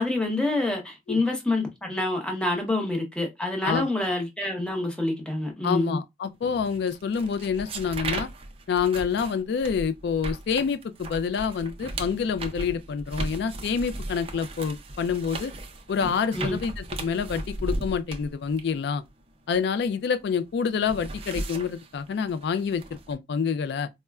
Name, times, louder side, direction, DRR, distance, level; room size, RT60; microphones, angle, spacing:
voice 1, 0.0-6.0 16.3-16.6, left 2 dB, 5° left, 0.7 m, -27 dB
voice 2, 5.6-8.3 8.7-15.5 15.9-19.0 19.5-23.9, left 6 dB, 60° left, 0.3 m, -27 dB
sound 1, 6.6-20.1 20.5-23.1, right 2 dB, 30° right, 0.5 m, -36 dB
4.2 x 2.1 x 2.3 m
head